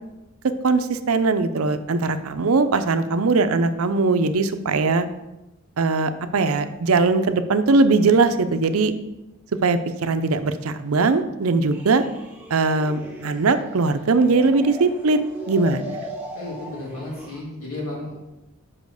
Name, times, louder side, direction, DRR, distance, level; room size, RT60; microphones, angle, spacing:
voice 1, 0.6-5.1 5.8-8.9 9.6-12.0 12.5-16.0, right 3 dB, 80° right, 10 dB, 0.6 m, -20 dB
sound 1, 11.7-17.4, equal, 10° right, 1.2 m, -38 dB
voice 2, 16.3-18.2, left 1 dB, 90° left, -4 dB, 3.0 m, -33 dB
5.6 x 5.3 x 6.4 m, 0.99 s
head